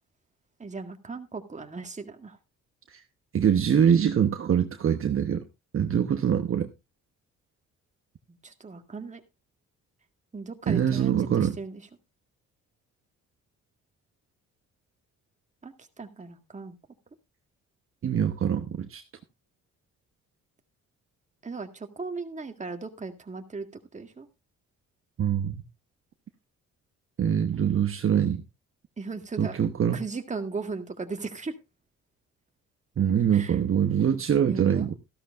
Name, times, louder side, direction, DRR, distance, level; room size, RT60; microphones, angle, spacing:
voice 1, 0.6-2.4 8.3-9.2 10.3-11.8 15.6-16.8 21.4-23.7 23.9-24.3 29.0-29.6 29.9-31.6 33.3-33.6 34.4-34.9, right 4 dB, 25° right, 6 dB, 1.8 m, -37 dB
voice 2, 3.3-5.4 5.7-6.7 10.7-11.6 18.0-19.0 25.2-25.5 27.2-28.4 29.4-30.0 33.0-34.9, right 8 dB, 45° right, 6 dB, 1.1 m, -24 dB
14.0 x 12.5 x 2.5 m, 0.25 s
cardioid pair, 90°, 30 cm